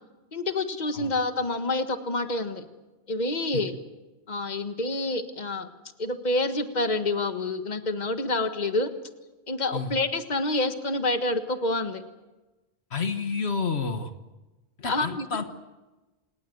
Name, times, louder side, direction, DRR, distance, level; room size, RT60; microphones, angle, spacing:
voice 1, 0.3-2.6 3.1-3.8 4.3-5.7 6.0-8.9 9.5-12.0 14.9-15.4, left 2 dB, 40° left, 8 dB, 1.7 m, -28 dB
voice 2, 12.9-14.1 14.8-15.4, left 5 dB, 70° left, 8 dB, 1.6 m, -29 dB
28.0 x 19.5 x 7.9 m, 1.1 s
omnidirectional pair, 1.1 m